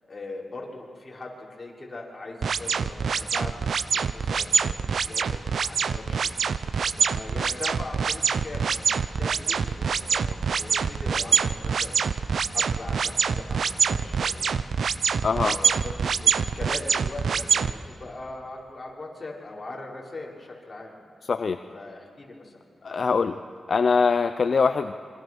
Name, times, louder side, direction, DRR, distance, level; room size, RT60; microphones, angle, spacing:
voice 1, 0.0-6.3 6.8-12.0 12.5-14.5 15.3-20.9 21.7-22.6, left 2 dB, 30° left, -3 dB, 6.1 m, -40 dB
sound 1, 2.4-17.7, right 6 dB, 75° right, 0.8 m, -25 dB
voice 2, 15.2-15.6 21.3-21.6 22.8-23.4 23.7-24.9, left 5 dB, 55° left, 9 dB, 0.8 m, -22 dB
28.0 x 24.5 x 6.5 m, 2.3 s
cardioid pair, 80°, 0 cm